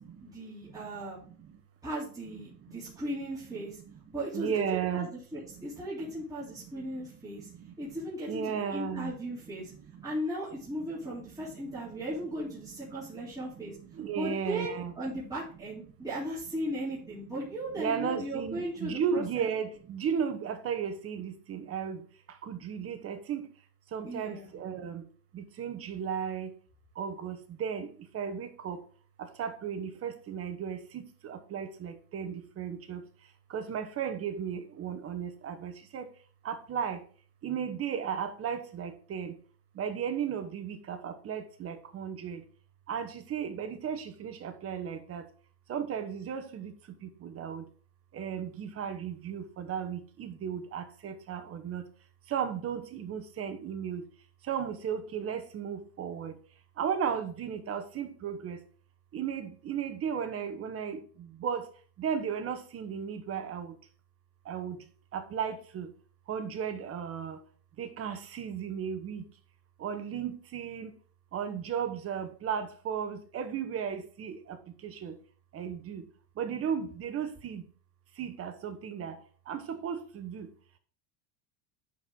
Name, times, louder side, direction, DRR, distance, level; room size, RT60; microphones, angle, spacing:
voice 1, 0.2-1.2 1.8-3.8 4.1-7.5 7.8-9.7 10.0-13.7 14.2-19.5 24.0-24.5, right 1 dB, 10° right, -9 dB, 3.3 m, -37 dB
voice 2, 4.3-5.1 7.6-7.7 8.3-9.1 13.9-14.9 17.8-22.0 22.4-23.5 23.9-25.0 25.3-26.5 27.0-28.8 29.2-33.0 33.5-36.1 36.4-37.0 37.4-39.3 39.8-42.4 42.9-45.2 45.7-46.7 47.0-47.6 48.1-51.8 52.3-54.0 54.5-56.3 56.8-58.6 59.1-61.6 62.0-63.7 64.5-64.8 65.1-65.9 66.3-67.4 67.8-69.2 69.8-70.9 71.3-74.6 74.8-75.1 75.5-76.1 76.4-77.6 78.2-79.2 79.5-80.5, right 7 dB, 30° right, 9 dB, 1.1 m, -35 dB
10.5 x 4.6 x 3.8 m, 0.43 s
supercardioid pair, 125°, 43 cm